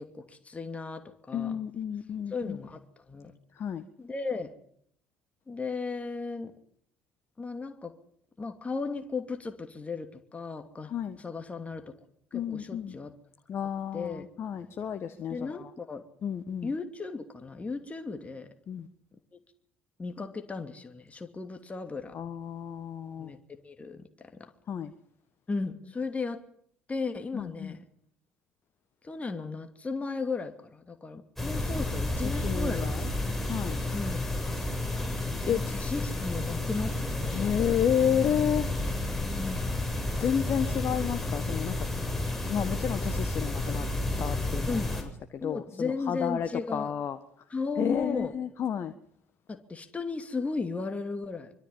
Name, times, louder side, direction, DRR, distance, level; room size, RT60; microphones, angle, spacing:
voice 1, 0.0-1.6 2.3-2.8 3.1-3.3 4.0-4.5 5.5-6.5 7.4-7.9 8.4-10.9 11.2-11.9 12.3-13.1 13.9-14.2 15.3-16.0 16.6-18.5 20.0-22.1 23.2-24.5 25.5-26.4 26.9-27.8 29.0-33.4 33.9-34.2 35.5-37.5 39.4-39.7 44.7-44.9 45.4-47.0 47.5-48.4 49.5-51.5, left 4 dB, 20° left, 6 dB, 2.8 m, -35 dB
voice 2, 1.3-2.6 3.6-3.8 10.9-11.2 12.3-13.0 13.5-15.6 16.2-16.7 18.7-18.9 22.1-23.3 24.7-24.9 27.3-27.7 32.4-33.1 33.5-33.8 35.5-35.6 37.3-38.7 40.2-41.8 42.5-43.9 44.2-44.8 45.3-47.2 47.8-48.9, left 8 dB, 45° left, 9 dB, 1.6 m, -31 dB
sound 1, 31.4-45.0, left 2 dB, 5° left, 7.9 m, -31 dB
24.5 x 23.5 x 5.7 m, 0.67 s
figure-of-eight pair, 55°, 6 cm